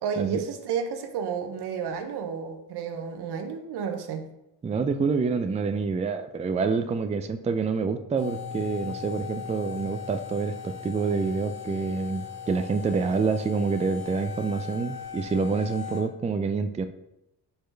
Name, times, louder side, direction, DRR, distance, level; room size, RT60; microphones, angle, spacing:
voice 1, 0.0-4.3, right 7 dB, 80° right, 6 dB, 0.9 m, -31 dB
voice 2, 4.6-16.9, right 4 dB, 20° right, 9 dB, 0.4 m, -27 dB
sound 1, 8.2-16.0, left 7 dB, 65° left, 2.1 m, -39 dB
5.2 x 4.4 x 4.5 m, 0.88 s
cardioid pair, 100°, 39 cm